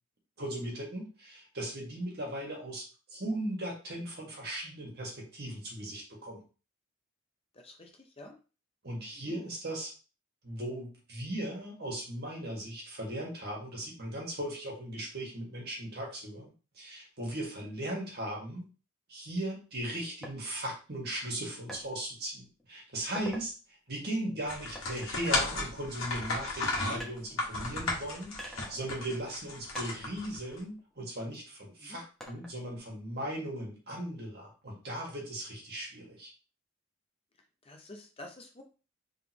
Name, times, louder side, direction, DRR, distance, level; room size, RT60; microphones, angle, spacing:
voice 1, 0.4-6.4 8.8-9.9 10.4-18.6 19.1-23.5 23.9-36.3, right 1 dB, 50° right, -2 dB, 1.7 m, -38 dB
voice 2, 7.5-8.3 9.2-9.4 31.8-32.0 37.6-38.6, left 1 dB, 25° left, 3 dB, 0.6 m, -49 dB
sound 1, 20.2-20.4 21.7-21.9 22.4-22.6 23.0-23.5 24.7-26.2 27.0-27.9 28.4-29.5 29.7-31.3 32.2-32.8, equal, ahead, 0.9 m, -47 dB
sound 2, 24.5-30.6, left 2 dB, 70° left, 1.4 m, -34 dB
4.0 x 3.4 x 2.9 m, 0.34 s
head